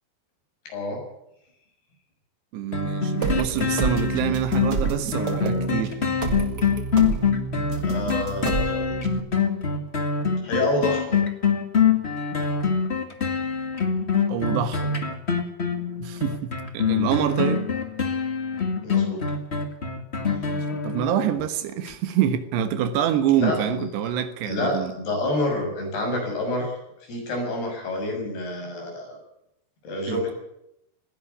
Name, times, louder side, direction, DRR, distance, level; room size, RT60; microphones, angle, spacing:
voice 1, 0.7-1.0 7.8-9.0 10.4-11.2 18.8-19.2 23.4-23.9 24.4-26.7 27.0-29.2 29.8-30.3, left 2 dB, 70° left, 9.0 m, -28 dB
voice 2, 2.5-6.0 14.3-15.0 16.0-17.7 20.4-24.9 30.1-30.3, right 9 dB, 90° right, 3.5 m, -26 dB
sound 1, 2.7-21.4 21.9-22.0, left 6 dB, 30° left, 1.2 m, -24 dB
sound 2, 3.2-9.2, right 5 dB, 50° right, 1.2 m, -29 dB
19.0 x 16.5 x 8.5 m
omnidirectional pair, 4.7 m